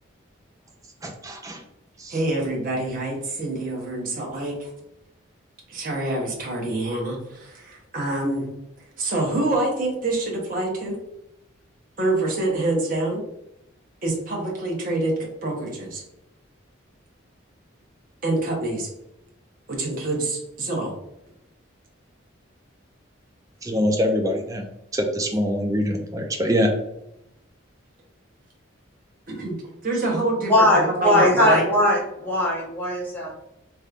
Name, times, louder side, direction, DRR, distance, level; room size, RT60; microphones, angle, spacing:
voice 1, 1.0-1.6 2.0-2.2 23.6-24.7 24.9-26.7, equal, 15° right, 3 dB, 0.4 m, -24 dB
voice 2, 2.1-4.7 5.7-8.5 9.0-11.0 12.0-13.2 14.0-15.1 15.4-16.0 18.2-18.9 19.7-20.9 29.3-29.5 29.8-31.6, right 2 dB, 45° right, -2 dB, 0.9 m, -26 dB
voice 3, 30.5-33.3, left 1 dB, 10° left, -6 dB, 1.0 m, -19 dB
3.4 x 3.0 x 2.4 m, 0.83 s
head